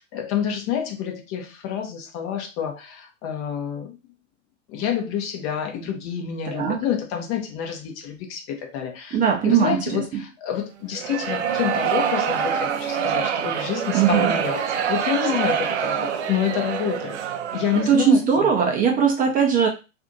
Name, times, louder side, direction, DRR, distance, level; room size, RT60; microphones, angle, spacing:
voice 1, 0.0-4.0 4.7-9.2 9.4-17.2 17.5-18.5, left 9 dB, 35° left, 4 dB, 0.8 m, -28 dB
voice 2, 6.5-6.9 9.1-10.2 13.9-14.3 17.9-19.7, right 7 dB, 20° right, 1 dB, 0.6 m, -20 dB
sound 1, 10.9-18.1, right 8 dB, 65° right, 0.6 m, -25 dB
2.6 x 2.5 x 3.8 m, 0.29 s
figure-of-eight pair, 100°, 38 cm